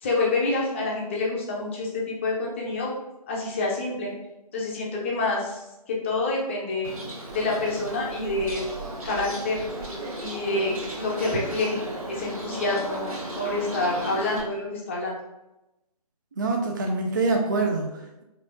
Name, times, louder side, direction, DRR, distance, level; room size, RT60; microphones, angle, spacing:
voice 1, 0.0-2.9 3.3-4.1 4.5-5.6 5.9-6.9 7.3-8.7 9.0-9.6 10.2-11.8 12.1-15.1, left 2 dB, 20° left, -3 dB, 0.6 m, -27 dB
Bird, 6.8-14.4, right 1 dB, 60° right, 1.2 m, -35 dB
voice 2, 16.4-18.2, right 3 dB, 30° right, 1 dB, 0.4 m, -25 dB
4.1 x 2.7 x 2.6 m, 0.94 s
figure-of-eight pair, 145°, 20 cm